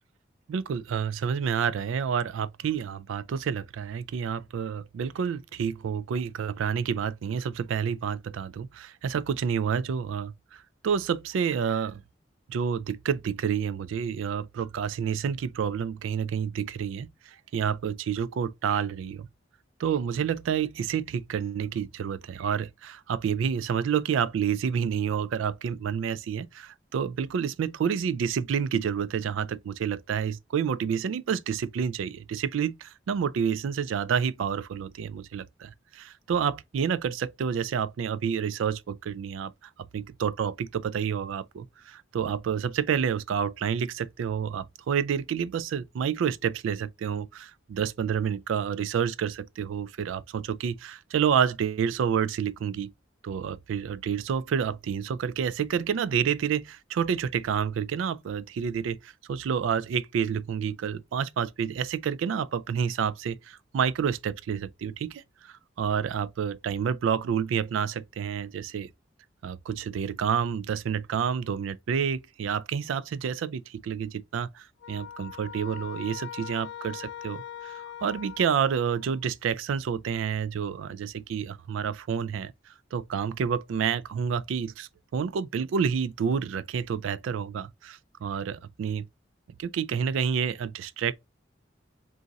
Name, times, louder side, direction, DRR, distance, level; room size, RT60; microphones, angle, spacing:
voice 1, 0.5-12.0 12.5-19.3 19.8-39.5 39.9-52.9 53.2-68.9 69.4-89.1 89.6-91.1, right 7 dB, 85° right, 0.3 m, -29 dB
sound 1, 74.8-79.2, left 9 dB, 70° left, 0.3 m, -41 dB
3.8 x 2.5 x 3.9 m
head